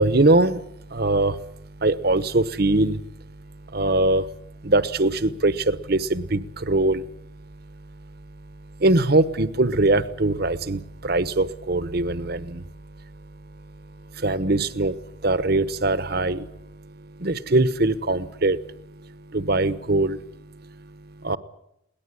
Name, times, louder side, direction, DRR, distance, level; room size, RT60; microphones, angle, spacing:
voice 1, 0.0-1.5 1.8-3.0 3.7-4.4 4.6-7.0 8.8-12.6 14.0-21.4, right 2 dB, 50° right, 14 dB, 1.1 m, -22 dB
22.0 x 18.5 x 10.0 m, 0.81 s
head